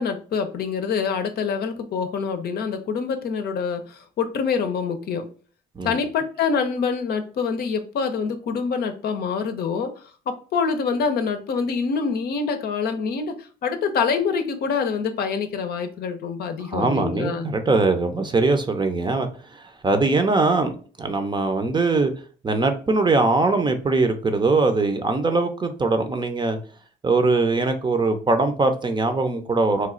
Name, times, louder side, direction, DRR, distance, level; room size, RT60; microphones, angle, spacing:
voice 1, 0.0-5.3 5.8-9.9 10.3-17.5, left 5 dB, 60° left, 0.6 m, -25 dB
voice 2, 16.7-20.7 21.0-22.1 22.4-26.6 27.0-29.9, right 3 dB, 25° right, 0.6 m, -21 dB
3.1 x 2.3 x 3.7 m
supercardioid pair, 75°, 18 cm